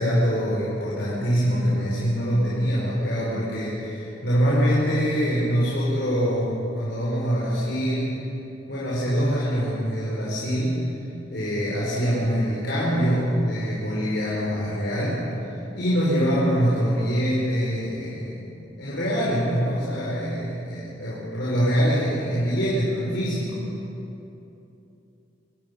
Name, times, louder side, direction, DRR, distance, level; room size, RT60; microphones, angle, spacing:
voice 1, 0.0-8.2 8.7-10.8 11.3-23.6, equal, 60° left, -7 dB, 5.3 m, -24 dB
25.5 x 18.0 x 7.1 m, 2.9 s
head